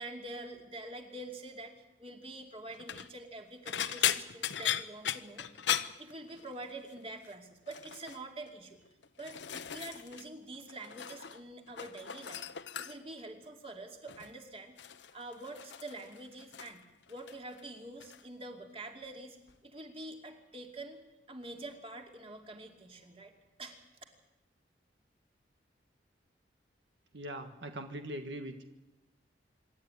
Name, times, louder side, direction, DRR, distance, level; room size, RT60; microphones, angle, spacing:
voice 1, 0.0-5.6 6.0-8.9 9.2-12.4 12.8-14.7 15.1-19.4 19.6-21.0 21.3-23.3 23.6-23.8, right 2 dB, 30° right, 4 dB, 2.6 m, -46 dB
sound 1, 2.7-3.1 3.7-6.7 7.0-7.3 7.7-8.2 8.9-10.3 10.5-11.4 11.7-13.2 14.1-14.4 14.8-16.8 17.1-17.6 18.0-18.2 19.5-19.6, left 10 dB, 75° left, 0.9 m, -37 dB
voice 2, 27.1-28.6, right 1 dB, 75° right, 6 dB, 1.5 m, -41 dB
26.0 x 12.5 x 9.7 m, 0.96 s
head